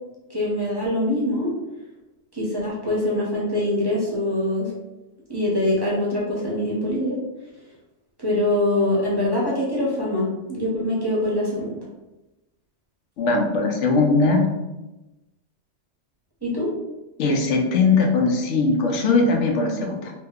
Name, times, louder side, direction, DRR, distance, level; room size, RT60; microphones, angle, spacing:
voice 1, 0.3-1.5 2.3-4.7 5.3-7.2 8.2-11.7 16.4-16.7, left 1 dB, 25° right, -6 dB, 0.7 m, -23 dB
voice 2, 13.2-14.4 17.2-20.1, left 3 dB, 85° left, 2 dB, 0.9 m, -20 dB
2.9 x 2.1 x 3.5 m, 1.0 s
omnidirectional pair, 1.2 m